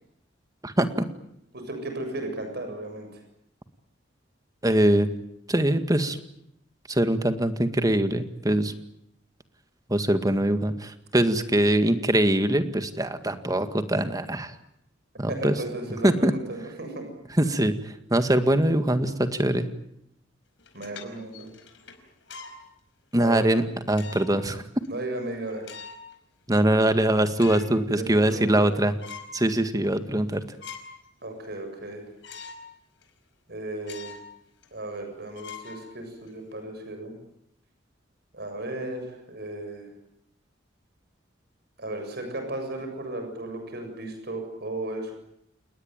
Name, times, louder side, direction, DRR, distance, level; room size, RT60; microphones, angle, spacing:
voice 1, 0.6-1.1 4.6-5.1 5.5-6.2 6.9-8.7 9.9-14.5 15.2-15.6 16.0-16.3 17.4-17.7 18.1-19.7 23.1-24.6 26.5-28.9 29.3-30.4, right 1 dB, 20° right, 9 dB, 1.9 m, -23 dB
voice 2, 1.5-3.2 15.3-17.0 20.7-21.5 23.2-23.6 24.9-25.6 27.9-28.7 31.2-32.0 33.5-34.2 34.7-37.2 38.3-39.9 41.8-45.1, right 2 dB, 55° right, 5 dB, 7.5 m, -35 dB
sound 1, 20.6-22.6 23.2-23.3 23.9-24.5 24.8-24.9 25.5-26.1 26.6-26.7 27.0-27.8 28.2-28.7 29.0-29.4 29.8-29.9 30.3-31.1 31.4-31.5 32.2-32.7 33.0-33.1 33.8-34.3 34.6-34.7 35.3-36.3, left 5 dB, 70° left, 5.1 m, -43 dB
29.0 x 20.0 x 9.1 m, 0.77 s
head